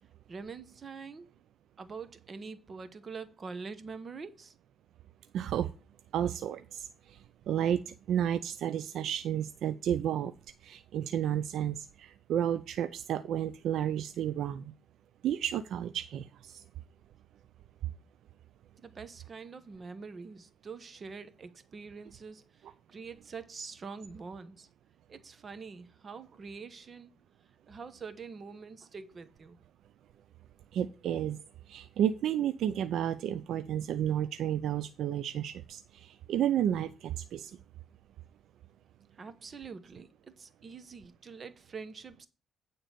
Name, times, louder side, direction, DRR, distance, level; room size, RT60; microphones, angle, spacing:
voice 1, 0.3-1.3 1.8-4.5 18.8-22.4 22.9-24.7 25.1-27.1 27.7-29.6 39.1-42.3, right 5 dB, 40° right, 1.0 m, -45 dB
voice 2, 5.3-5.7 6.1-10.3 10.6-14.7 15.2-16.6 17.8-17.9 30.7-31.4 31.7-37.6, right 10 dB, 75° right, 0.4 m, -32 dB
9.2 x 3.9 x 6.7 m
cardioid pair, 90°, 0 cm